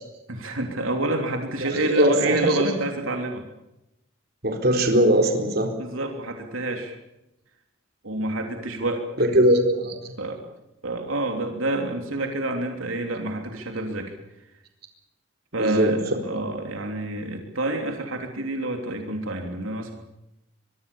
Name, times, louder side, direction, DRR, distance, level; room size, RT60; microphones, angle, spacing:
voice 1, 0.3-3.4 5.8-6.9 8.0-9.0 9.4-9.5 10.2-10.4 10.8-14.1 15.5-19.9, right 2 dB, 90° right, 3 dB, 3.3 m, -28 dB
voice 2, 1.6-2.6 4.4-5.7 9.2-10.1 15.5-15.9, right 1 dB, 50° right, 3 dB, 4.3 m, -21 dB
24.0 x 23.5 x 7.1 m, 0.89 s
head